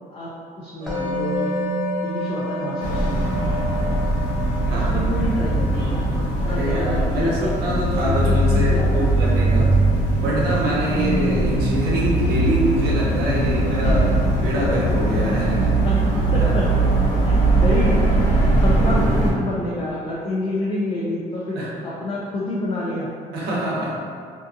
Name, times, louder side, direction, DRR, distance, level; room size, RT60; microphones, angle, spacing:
voice 1, 0.5-1.5 2.0-3.2 4.7-6.1 6.4-7.5 8.0-9.1 10.9-11.2 15.8-16.7 17.3-18.0 18.6-23.1, left 2 dB, 35° left, -6 dB, 0.4 m, -28 dB
sound 1, 0.8-5.2, equal, 35° right, 0.8 m, -33 dB
Musical instrument, 0.9-12.0, left 1 dB, ahead, 0.7 m, -33 dB
sound 2, 2.8-19.3, right 2 dB, 75° left, 1.0 m, -20 dB
voice 2, 4.7-5.0 6.4-9.7 10.2-14.1 14.4-15.7 16.4-16.5 21.5-21.7 23.3-24.0, right 1 dB, 70° right, -6 dB, 0.8 m, -25 dB
2.6 x 2.3 x 2.5 m, 2.2 s
cardioid pair, 110°, 17 cm